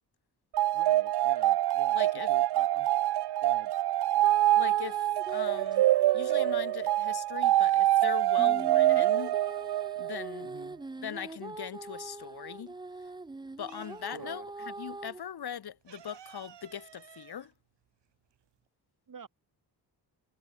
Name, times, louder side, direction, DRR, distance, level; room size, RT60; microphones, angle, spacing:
sound 1, 0.5-10.3, right 14 dB, 70° right, 0.5 m, -25 dB
voice 1, 0.7-2.9 3.4-3.7 10.4-10.8 14.1-14.5 19.1-19.3, right 6 dB, 50° right, 3.8 m, -47 dB
voice 2, 1.9-2.3 4.6-5.9 6.1-9.4 10.0-10.5 11.0-12.8 13.6-17.5, left 8 dB, 65° left, 1.7 m, -40 dB
sound 2, 4.2-6.9 8.3-15.2, right 3 dB, 10° right, 0.5 m, -43 dB
sound 3, 8.5-9.4 9.7-11.7 12.0-14.4 14.7-14.8 15.1-18.7, right 9 dB, 85° right, 2.8 m, -55 dB
wide cardioid pair, 105°, 42 cm